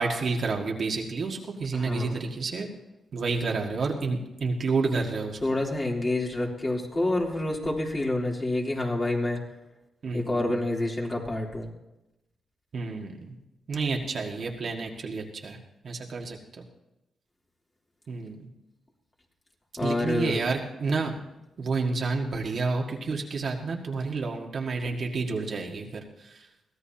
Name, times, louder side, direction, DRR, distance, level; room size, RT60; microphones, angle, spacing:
voice 1, 0.0-2.7 3.1-5.4 10.0-10.6 12.7-13.3 13.7-15.6 15.8-16.6 18.1-18.4 19.8-21.1 21.6-26.5, right 4 dB, 55° right, 1 dB, 1.9 m, -30 dB
voice 2, 1.7-2.2 5.4-9.4 10.1-11.7 19.8-20.5, left 1 dB, 30° left, -1 dB, 3.4 m, -28 dB
23.0 x 16.0 x 2.9 m, 0.95 s
cardioid pair, 90°, 0 cm